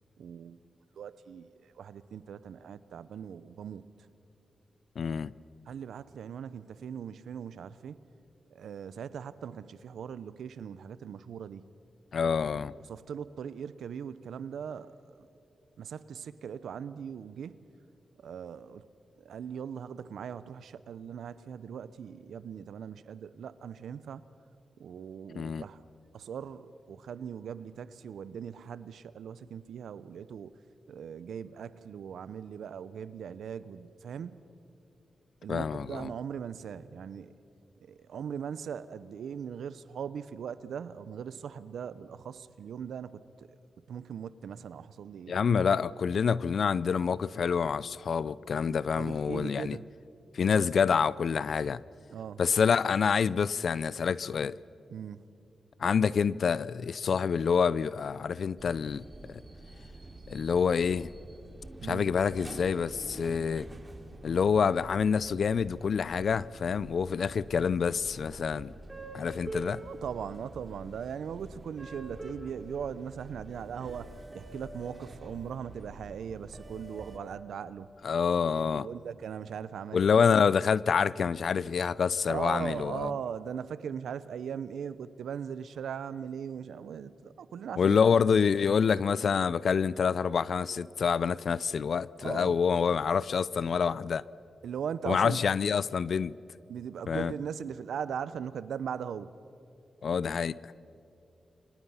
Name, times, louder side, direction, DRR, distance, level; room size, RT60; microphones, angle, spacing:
voice 1, 0.2-0.6 1.0-3.8 5.7-8.0 8.5-11.6 12.9-14.9 15.2-15.3 15.8-17.6 18.2-18.8 19.2-24.2 24.8-25.8 26.1-30.5 30.9-34.5 35.4-37.3 37.8-43.6 43.9-45.4 49.0-49.9 52.1-52.4 54.9-55.2 61.8-62.0 69.8-77.9 78.4-80.4 82.3-88.0 92.2-92.6 94.6-95.4 96.7-99.3, right 7 dB, 80° right, 16 dB, 0.7 m, -39 dB
voice 2, 5.0-5.3 12.1-12.7 25.3-25.6 35.5-36.1 45.3-49.8 50.3-51.8 52.4-54.5 55.8-59.4 60.3-61.1 61.9-63.7 64.2-68.7 69.1-69.8 78.0-78.9 79.9-83.1 87.8-94.2 95.0-96.3 97.1-97.3 100.0-100.8, left 6 dB, 70° left, 20 dB, 0.5 m, -27 dB
sound 1, 58.6-77.2, right 1 dB, 30° right, 3.3 m, -46 dB
29.5 x 25.0 x 5.7 m, 2.7 s
supercardioid pair, 45°, 0 cm